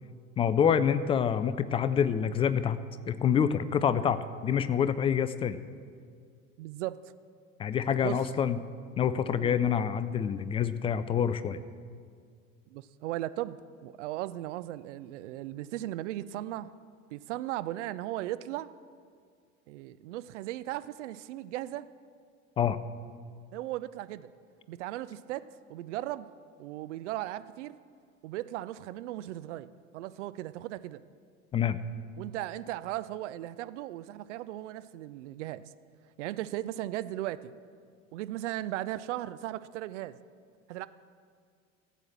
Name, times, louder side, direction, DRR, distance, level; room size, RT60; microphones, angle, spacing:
voice 1, 0.4-2.8 3.1-4.2 4.4-5.6 7.6-8.6 9.0-11.6 22.6-22.8 31.5-31.8, left 8 dB, 15° left, 13 dB, 0.3 m, -26 dB
voice 2, 6.6-7.0 8.0-8.2 9.4-9.6 12.7-16.7 17.1-18.7 19.7-21.9 23.5-24.3 24.7-26.3 26.6-27.7 28.2-31.0 32.2-35.6 36.2-37.5 38.1-40.2 40.7-40.9, right 14 dB, 60° right, 15 dB, 0.6 m, -37 dB
15.0 x 8.0 x 7.3 m, 2.1 s
figure-of-eight pair, 70°, 41 cm